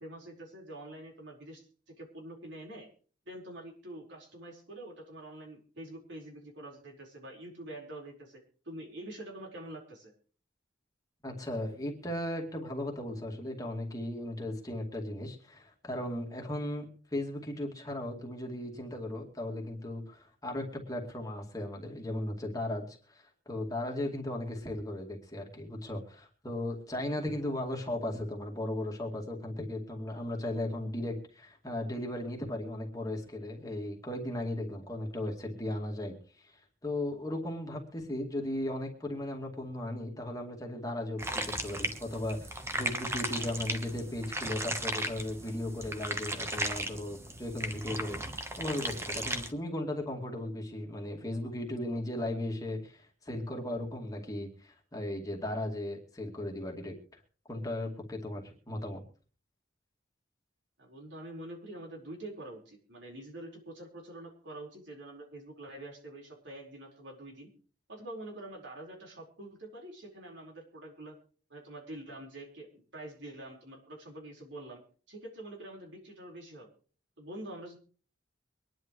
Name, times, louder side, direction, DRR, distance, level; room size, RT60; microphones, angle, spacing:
voice 1, 0.0-2.9 3.2-10.1 60.8-67.5 67.9-71.2 71.5-74.8 75.1-76.7 77.2-77.8, right 1 dB, 70° right, 0 dB, 4.6 m, -46 dB
voice 2, 11.2-48.2 48.6-57.2 57.5-59.0, left 1 dB, 20° left, 0 dB, 2.4 m, -36 dB
sound 1, 41.2-49.5, right 1 dB, 15° right, 1.1 m, -36 dB
24.5 x 10.5 x 3.2 m, 0.40 s
head